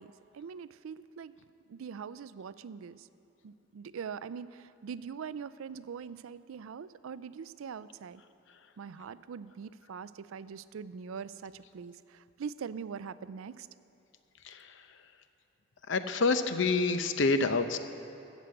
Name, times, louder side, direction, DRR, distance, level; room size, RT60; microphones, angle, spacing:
voice 1, 0.0-1.3 1.7-3.1 3.4-8.2 8.8-13.7, right 6 dB, 90° right, 16 dB, 0.4 m, -42 dB
voice 2, 14.4-14.8 15.9-17.8, left 3 dB, 65° left, 9 dB, 0.7 m, -27 dB
13.5 x 8.1 x 7.7 m, 2.7 s
head